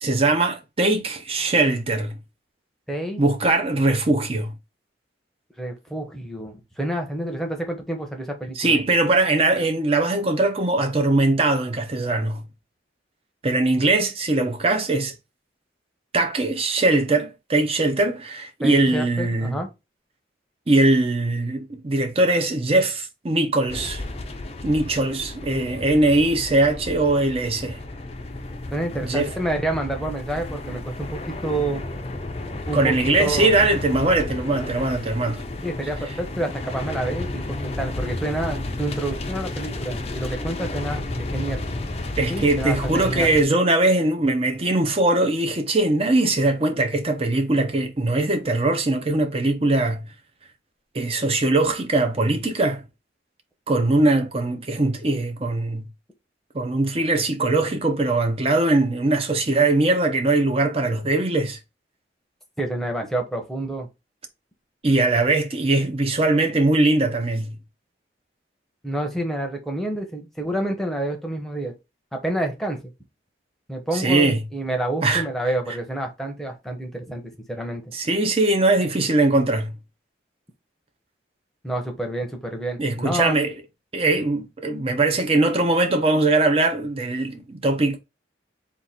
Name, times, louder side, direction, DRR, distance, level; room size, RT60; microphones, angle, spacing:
voice 1, 0.0-2.2 3.2-4.5 8.6-12.4 13.4-15.1 16.1-19.6 20.7-24.0 24.6-27.8 29.0-29.3 32.7-35.4 42.2-50.0 50.9-52.8 53.7-55.9 56.5-61.6 64.8-67.6 73.9-74.4 75.0-75.2 77.9-79.7 82.8-83.5 83.9-88.0, right 2 dB, 30° right, 0.6 m, -21 dB
voice 2, 2.9-3.2 5.6-8.8 18.6-19.7 28.7-31.8 32.7-32.9 33.2-33.5 35.6-41.6 42.3-43.3 62.6-63.9 68.8-71.7 72.1-72.8 73.7-77.2 77.5-77.8 81.6-83.4, right 1 dB, ahead, 0.9 m, -28 dB
sound 1, 23.7-43.4, left 2 dB, 35° left, 0.5 m, -32 dB
3.7 x 2.4 x 4.2 m
head